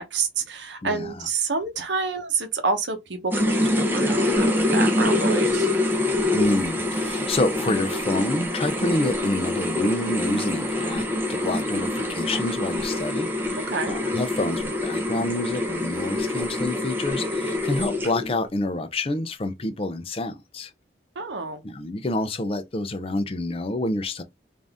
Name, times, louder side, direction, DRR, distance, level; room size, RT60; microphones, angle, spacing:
voice 1, 0.0-5.7 11.7-11.8 13.7-14.0 21.2-21.6, right 4 dB, 85° right, 0.9 m, -28 dB
voice 2, 0.8-1.3 6.3-20.7 21.6-24.2, left 2 dB, 30° left, 0.5 m, -28 dB
sound 1, 3.3-18.4, left 1 dB, 10° right, 0.7 m, -25 dB
3.7 x 2.6 x 3.5 m
head